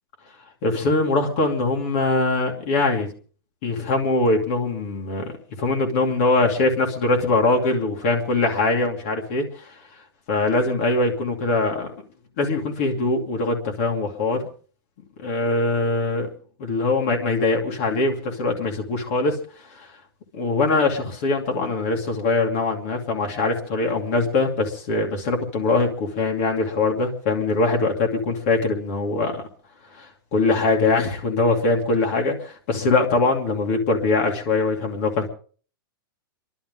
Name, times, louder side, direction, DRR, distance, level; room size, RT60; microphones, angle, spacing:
voice 1, 0.6-3.1 3.6-5.3 5.6-9.7 10.3-11.9 12.4-14.4 15.2-16.3 16.6-19.4 19.7-19.9 20.3-29.4 29.9-35.3, left 3 dB, 35° left, 1 dB, 2.6 m, -22 dB
29.5 x 12.0 x 3.8 m, 0.43 s
supercardioid pair, 175°, 12 cm